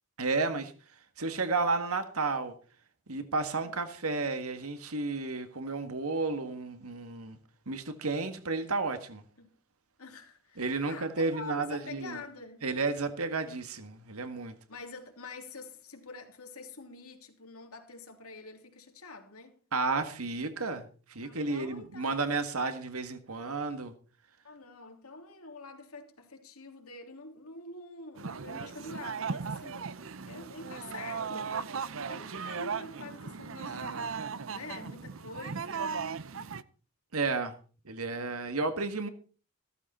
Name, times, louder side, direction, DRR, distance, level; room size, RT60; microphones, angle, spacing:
voice 1, 0.2-0.7 1.2-2.6 3.1-7.4 7.7-9.2 10.6-12.2 12.6-14.6 19.7-23.9 37.1-37.6 37.9-39.1, right 3 dB, 90° right, 1.8 m, -32 dB
voice 2, 10.0-12.7 14.7-19.6 21.2-22.3 24.4-29.9 30.2-31.6 31.9-34.2 34.5-35.9, left 3 dB, 90° left, 3.1 m, -46 dB
sound 1, 28.2-36.6, right 5 dB, 65° right, 0.7 m, -37 dB
15.5 x 13.5 x 4.3 m
head